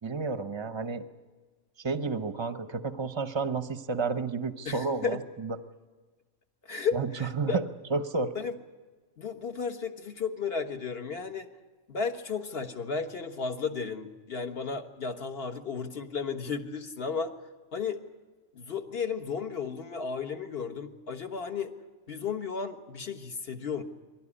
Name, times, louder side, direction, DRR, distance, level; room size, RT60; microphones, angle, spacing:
voice 1, 0.0-1.0 1.8-5.6 6.9-7.6 7.9-8.3, right 4 dB, 25° right, 10 dB, 0.8 m, -31 dB
voice 2, 4.6-5.2 6.6-7.6 8.3-8.5 9.2-11.5 11.9-17.3 17.7-18.0 18.5-21.7 22.1-23.8, left 5 dB, 50° left, 7 dB, 1.5 m, -34 dB
23.0 x 17.0 x 9.9 m, 1.4 s
omnidirectional pair, 1.4 m